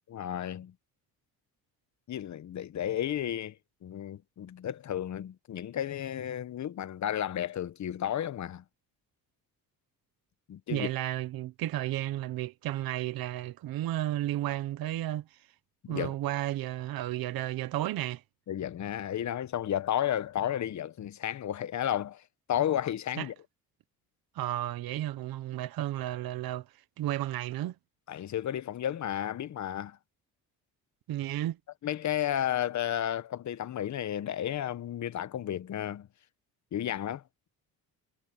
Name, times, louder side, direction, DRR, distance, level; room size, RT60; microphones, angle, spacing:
voice 1, 0.1-0.7 2.1-3.6 3.8-8.6 10.5-10.9 15.8-16.1 18.5-22.2 22.5-23.3 28.1-30.0 31.8-36.1 36.7-37.2, left 11 dB, 50° left, 1.1 m, -32 dB
voice 2, 10.7-15.4 15.9-18.2 23.2-23.3 24.3-26.7 27.0-27.7 31.1-31.6, right 14 dB, 75° right, 1.0 m, -33 dB
cardioid pair, 95°, 36 cm